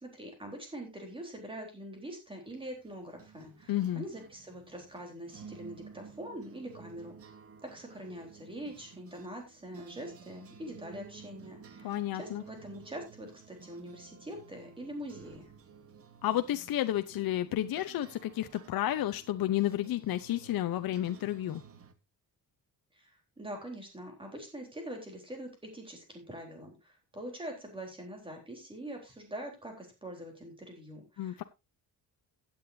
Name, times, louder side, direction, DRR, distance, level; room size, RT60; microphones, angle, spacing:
voice 1, 0.0-7.1 7.6-15.5 22.9-31.4, right 1 dB, 15° right, 2 dB, 3.8 m, -44 dB
sound 1, 2.5-21.9, right 6 dB, 40° right, 1.2 m, -53 dB
voice 2, 3.7-4.0 11.8-12.4 16.2-21.6 31.2-31.4, left 13 dB, 70° left, 9 dB, 0.8 m, -31 dB
16.0 x 8.8 x 2.7 m, 0.24 s
wide cardioid pair, 160°, 37 cm